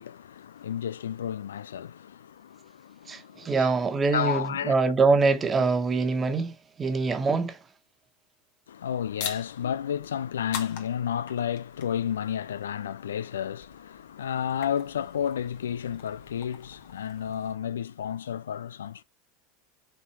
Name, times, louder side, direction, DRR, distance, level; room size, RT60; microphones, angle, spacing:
voice 1, 0.0-3.7 4.1-4.7 8.7-19.0, left 9 dB, 85° left, 0.3 m, -32 dB
voice 2, 3.1-7.6, right 4 dB, 25° right, 1.4 m, -24 dB
sound 1, 9.2-17.5, left 8 dB, 65° left, 1.7 m, -43 dB
5.9 x 3.9 x 4.5 m
hypercardioid pair, 90°, 0 cm